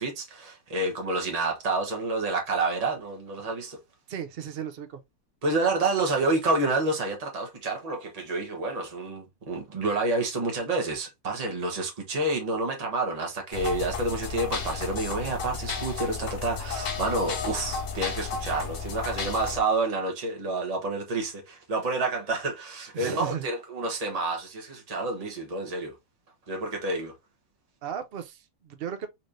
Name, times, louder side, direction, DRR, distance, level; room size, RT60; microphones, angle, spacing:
voice 1, 0.0-3.8 5.4-25.9 26.5-27.1, right 2 dB, 25° right, 1.1 m, -29 dB
voice 2, 4.1-5.0 22.9-23.5 27.8-29.1, right 8 dB, 60° right, 0.6 m, -35 dB
sound 1, 13.5-19.6, left 5 dB, 85° left, 1.7 m, -33 dB
4.2 x 3.2 x 2.5 m
omnidirectional pair, 1.8 m